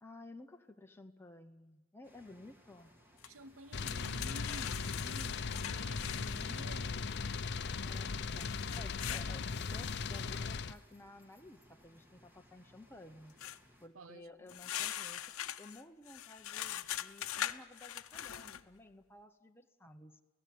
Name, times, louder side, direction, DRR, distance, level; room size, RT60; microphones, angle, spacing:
voice 1, 0.0-2.9 7.7-13.4 13.8-20.2, left 2 dB, 10° left, 1.0 m, -55 dB
sound 1, 2.0-13.9, left 1 dB, 10° right, 2.6 m, -65 dB
sound 2, 3.2-3.3 3.7-6.9 8.4-9.3 13.4-13.6 14.5-18.6, left 11 dB, 85° left, 0.8 m, -42 dB
voice 2, 3.2-7.2 13.9-14.6, right 2 dB, 80° right, 1.0 m, -52 dB
sound 3, 3.7-10.7, left 5 dB, 55° left, 0.7 m, -38 dB
29.0 x 17.0 x 9.4 m
head